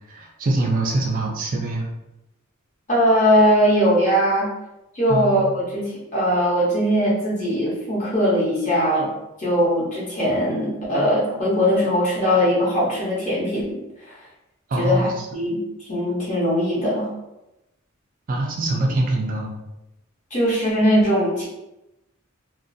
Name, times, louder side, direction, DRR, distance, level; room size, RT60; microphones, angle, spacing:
voice 1, 0.1-1.9 5.1-5.5 14.7-15.1 18.3-19.6, right 2 dB, 40° right, 0 dB, 0.3 m, -24 dB
voice 2, 2.9-4.5 4.9-5.8 6.1-9.1 9.4-13.8 14.8-15.6 15.9-17.1 20.3-21.5, equal, 35° left, -7 dB, 0.9 m, -20 dB
2.4 x 2.1 x 2.5 m, 0.93 s
head